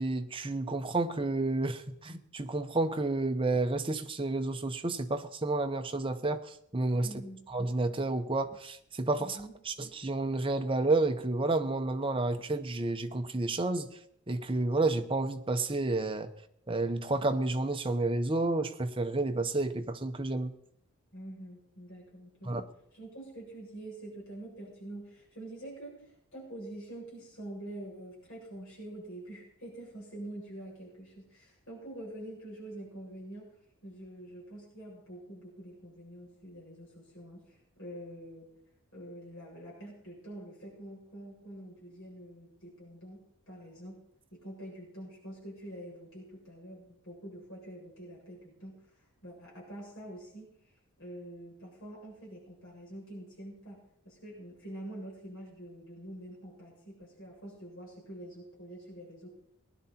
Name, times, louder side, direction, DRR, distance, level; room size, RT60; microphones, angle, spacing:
voice 1, 0.0-6.4 6.7-7.1 7.5-9.4 9.7-13.9 14.3-16.3 16.7-20.5 22.5-22.6, right 2 dB, 25° right, 0.8 m, -30 dB
voice 2, 7.0-7.4 9.2-9.5 21.1-22.7 22.9-33.5 33.8-38.5 38.9-43.2 43.5-44.0 44.3-50.5 51.0-53.8 54.0-59.3, right 1 dB, 60° left, 7.5 m, -46 dB
19.0 x 11.0 x 4.4 m
head